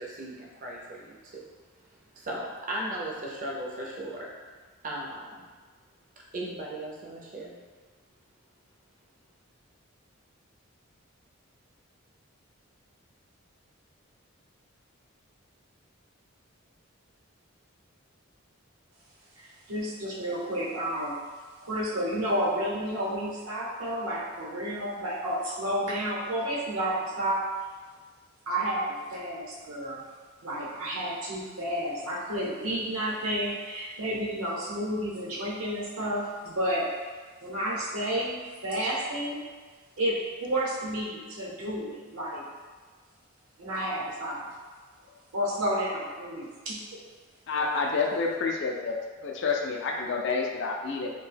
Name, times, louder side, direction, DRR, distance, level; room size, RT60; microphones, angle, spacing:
voice 1, 0.0-1.3 2.2-4.3 4.8-5.4 6.3-7.5, right 1 dB, 40° right, -3 dB, 0.5 m, -36 dB
voice 2, 19.7-21.2 21.6-27.4 28.5-28.8 29.1-30.0 30.4-36.9 37.4-39.4 40.0-42.4 43.6-44.4 45.3-47.0, right 1 dB, 85° right, -5 dB, 0.8 m, -31 dB
voice 3, 47.5-51.1, left 4 dB, 55° left, 1 dB, 0.3 m, -29 dB
2.6 x 2.1 x 3.3 m, 1.4 s
head